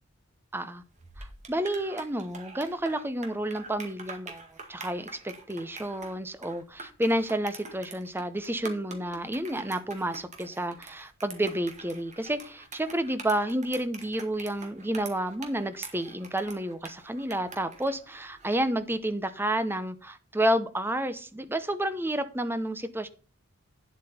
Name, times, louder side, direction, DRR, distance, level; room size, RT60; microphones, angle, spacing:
voice 1, 0.5-0.8 1.2-23.1, right 1 dB, 10° right, 0.7 m, -30 dB
sound 1, 0.9-18.7, right 4 dB, 35° right, 2.0 m, -45 dB
9.7 x 7.7 x 4.3 m
head